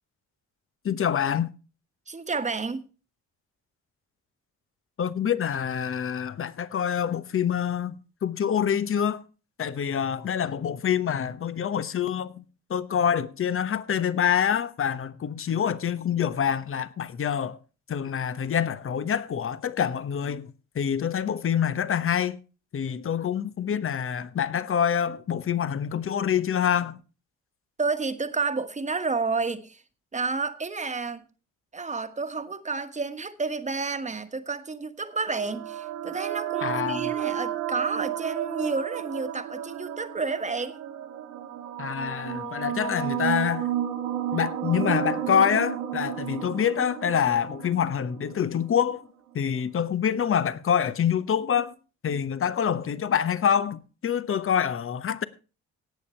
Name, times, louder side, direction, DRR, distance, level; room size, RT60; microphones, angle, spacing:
voice 1, 0.8-1.5 5.0-8.0 8.2-9.2 9.6-12.4 12.7-17.6 17.9-22.4 22.7-27.0 36.6-37.1 41.8-43.7 44.3-49.1 49.3-51.8 52.0-55.2, left 8 dB, 45° left, 1.1 m, -26 dB
voice 2, 2.1-2.9 27.8-29.8 30.1-31.3 31.7-40.8, right 4 dB, 25° right, 1.5 m, -30 dB
sound 1, 35.2-48.8, right 11 dB, 90° right, 2.0 m, -32 dB
17.5 x 7.1 x 4.4 m
cardioid pair, 90°, 30 cm